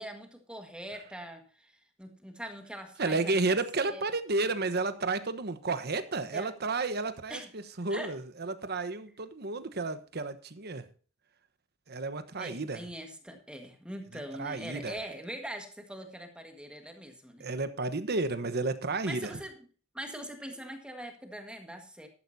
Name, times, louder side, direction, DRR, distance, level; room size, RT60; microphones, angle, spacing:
voice 1, 0.0-1.7 2.0-4.0 6.3-6.5 7.3-7.5 7.9-8.1 12.4-17.5 19.1-19.6 19.9-22.1, right 1 dB, 5° right, 4 dB, 1.7 m, -42 dB
voice 2, 3.0-10.9 11.9-12.8 14.4-14.9 17.4-19.3, right 3 dB, 50° right, 11 dB, 1.1 m, -32 dB
14.0 x 11.5 x 2.8 m, 0.40 s
head